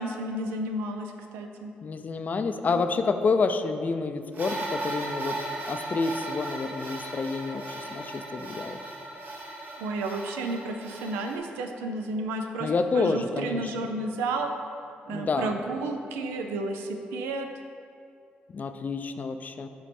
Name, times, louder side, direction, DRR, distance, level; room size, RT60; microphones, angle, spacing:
voice 1, 0.0-1.7 2.7-2.8 9.8-14.5 15.1-17.5, right 2 dB, 90° right, 5 dB, 0.4 m, -32 dB
voice 2, 1.8-5.4 5.7-8.8 12.6-13.9 15.1-15.6 18.5-19.7, left 4 dB, 45° left, 8 dB, 0.4 m, -28 dB
sound 1, 4.3-11.4, right 2 dB, 50° right, 0.9 m, -37 dB
7.3 x 3.1 x 4.2 m, 2.5 s
supercardioid pair, 60°, 4 cm